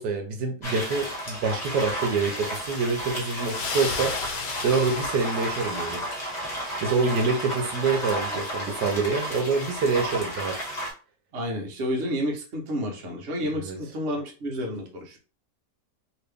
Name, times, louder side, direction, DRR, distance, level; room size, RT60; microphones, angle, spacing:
voice 1, 0.0-4.1 4.6-6.0 6.4-6.5 6.8-10.6 13.6-13.8, right 4 dB, 80° right, 3 dB, 1.2 m, -26 dB
sound 1, 0.6-10.9, equal, 25° left, 1.2 m, -32 dB
sound 2, 3.4-6.4, left 5 dB, 85° left, 1.4 m, -34 dB
voice 2, 11.3-15.2, equal, 45° right, 0 dB, 1.1 m, -30 dB
2.9 x 2.9 x 3.4 m, 0.35 s
omnidirectional pair, 1.8 m